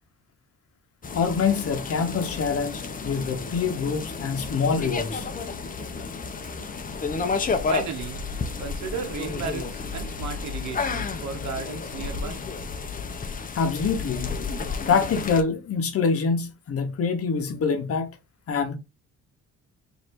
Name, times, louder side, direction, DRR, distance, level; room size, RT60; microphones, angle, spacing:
sound 1, 1.0-15.4, left 4 dB, 30° left, 0.6 m, -31 dB
voice 1, 1.1-5.3 13.6-14.4 14.9-18.2 18.5-18.8, left 5 dB, 50° left, 0.9 m, -25 dB
voice 2, 7.7-8.2 8.6-12.4, right 6 dB, 70° right, 0.9 m, -34 dB
3.2 x 2.7 x 4.4 m
cardioid pair, 90°, 30 cm